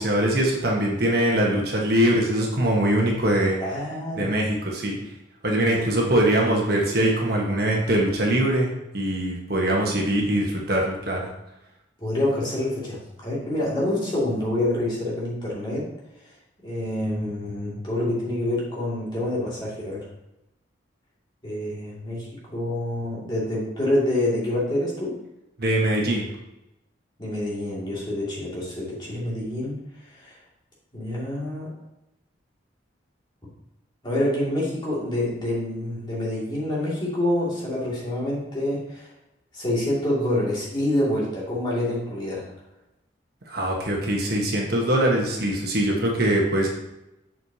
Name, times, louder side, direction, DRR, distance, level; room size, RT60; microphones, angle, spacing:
voice 1, 0.0-3.6 4.2-4.9 5.4-11.3 25.6-26.3 43.5-46.7, right 1 dB, 50° right, -1 dB, 1.3 m, -22 dB
voice 2, 3.6-4.4 4.8-5.0 5.7-5.9 12.0-15.9 16.6-20.1 21.4-25.2 27.2-29.8 30.1-30.4 30.9-31.7 34.0-39.1 39.5-42.5, left 1 dB, 25° left, -6 dB, 2.3 m, -27 dB
7.9 x 6.2 x 2.8 m, 0.91 s
head